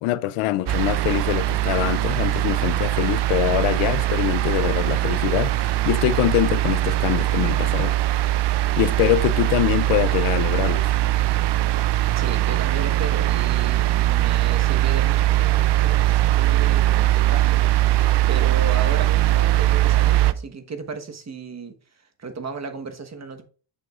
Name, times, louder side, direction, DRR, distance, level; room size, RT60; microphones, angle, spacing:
voice 1, 0.0-8.0 8.8-10.9, left 15 dB, 80° left, 0.6 m, -24 dB
sound 1, 0.7-20.3, right 15 dB, 55° right, 0.6 m, -21 dB
voice 2, 12.1-21.7 22.2-23.4, right 4 dB, 30° right, 1.3 m, -35 dB
8.7 x 6.3 x 2.4 m
cardioid pair, 80°, 50 cm